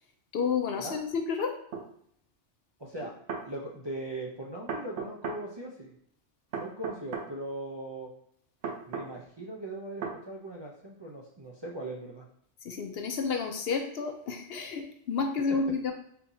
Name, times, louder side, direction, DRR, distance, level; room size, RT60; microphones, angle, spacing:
voice 1, 0.3-1.5 12.6-15.9, left 5 dB, 65° left, 5 dB, 0.7 m, -30 dB
sound 1, 1.7-1.9 3.0-3.5 4.7-5.4 6.5-7.3 8.6-9.1 10.0-10.2, right 5 dB, 75° right, 1.0 m, -35 dB
voice 2, 2.8-3.1 3.4-5.9 6.6-8.1 8.9-12.3 15.5-15.6, right 1 dB, 35° right, -3 dB, 0.4 m, -39 dB
4.5 x 3.6 x 2.7 m, 0.67 s
omnidirectional pair, 1.2 m